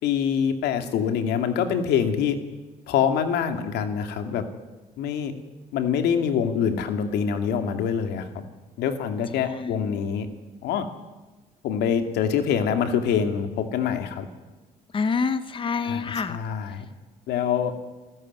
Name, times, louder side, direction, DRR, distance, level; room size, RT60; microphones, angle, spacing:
voice 1, 0.0-2.4 2.9-4.5 5.0-5.3 5.7-8.4 8.8-10.3 10.6-10.9 11.6-14.3 15.8-16.9 17.3-17.7, left 7 dB, 80° left, 7 dB, 2.5 m, -25 dB
voice 2, 9.5-10.0 14.9-16.4, left 5 dB, 30° left, 11 dB, 1.2 m, -27 dB
28.5 x 14.0 x 9.5 m, 1.2 s
cardioid pair, 110°, 17 cm